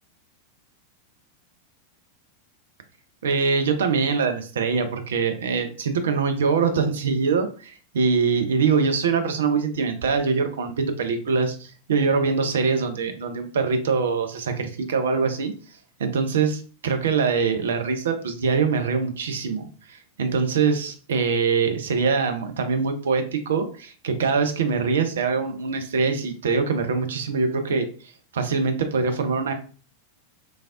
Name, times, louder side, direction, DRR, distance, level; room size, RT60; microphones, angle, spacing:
voice 1, 3.2-15.5 16.0-27.9 28.3-29.5, right 5 dB, 65° right, 7 dB, 0.5 m, -23 dB
3.2 x 2.4 x 2.4 m, 0.38 s
figure-of-eight pair, 90°, 0 cm